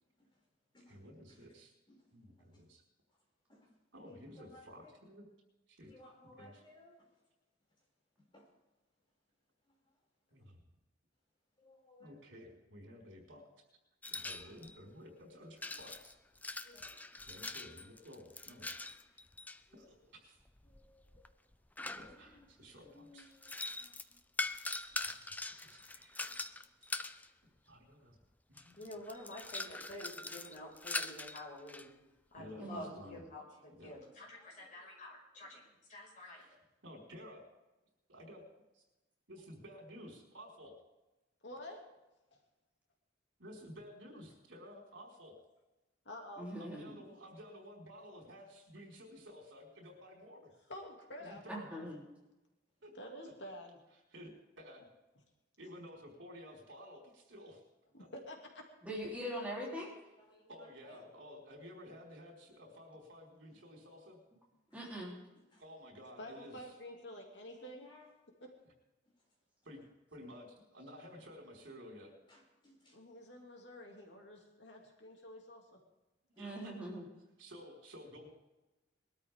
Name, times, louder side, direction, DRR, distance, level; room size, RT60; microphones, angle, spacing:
voice 1, 0.9-1.7 2.1-2.8 3.9-5.3 5.7-5.9 6.4-6.6 10.3-10.6 12.0-13.5 14.1-16.1 17.2-18.7 19.1-19.3 19.7-20.4 22.0-23.3 24.9-26.4 27.4-28.1 28.5-28.8 32.4-33.2 33.8-34.0 35.5-35.6 36.2-36.5 36.8-37.4 38.1-38.4 38.7-38.8 39.3-40.7 43.4-45.3 46.6-50.5 51.2-51.8 52.8-52.9 54.1-54.9 55.6-57.6 58.0-58.1 60.5-64.2 65.6-66.7 69.6-72.1 76.4-76.7 77.4-78.3, equal, 80° right, 0 dB, 5.0 m, -53 dB
voice 2, 4.0-4.9 5.8-7.1 8.3-8.5 11.6-12.2 14.1-14.5 16.6-17.0 18.6-18.7 19.7-19.9 20.6-21.3 21.9-24.1 34.3-34.9 36.5-36.6 60.2-61.0 63.5-63.6 64.7-64.8 65.3-65.6 67.4-68.1 72.3-73.0, left 1 dB, 25° left, -4 dB, 6.4 m, -61 dB
sound 1, 14.0-14.8 15.6-19.6 20.5-22.4 23.2-27.3 28.2-28.3 28.6-31.9, left 2 dB, 10° left, 0.4 m, -42 dB
voice 3, 28.8-31.9 32.3-36.4, left 1 dB, 40° left, -3 dB, 5.8 m, -49 dB
voice 4, 41.4-41.8 46.0-46.5 50.7-51.4 52.9-53.8 57.9-58.7 66.2-67.9 68.4-68.5 72.9-75.8, left 1 dB, 65° left, 1 dB, 2.7 m, -49 dB
voice 5, 46.4-46.9 51.5-52.0 58.8-59.9 64.7-65.1 76.4-77.0, equal, 10° right, -4 dB, 3.6 m, -41 dB
22.0 x 13.0 x 3.7 m, 1.0 s
head